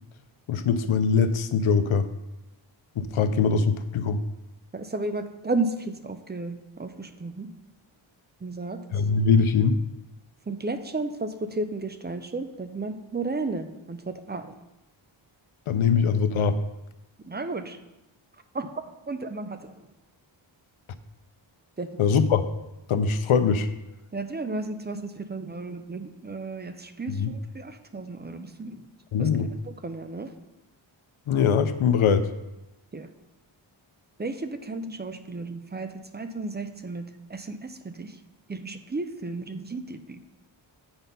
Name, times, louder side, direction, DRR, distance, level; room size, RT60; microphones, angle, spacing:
voice 1, 0.5-2.1 3.0-4.2 8.9-9.8 15.7-16.6 22.0-22.4 22.9-23.7 27.1-27.3 29.1-29.5 31.3-32.3, left 6 dB, 80° left, 11 dB, 0.7 m, -22 dB
voice 2, 4.7-7.5 8.4-8.8 10.5-14.5 17.3-17.8 18.5-18.7 19.1-19.7 21.8-21.9 24.1-28.8 29.2-30.3 32.9-33.1 34.2-37.0 37.3-38.1 38.5-40.2, right 3 dB, 20° right, 9 dB, 0.5 m, -33 dB
8.8 x 4.1 x 5.3 m, 0.99 s
wide cardioid pair, 105°, 48 cm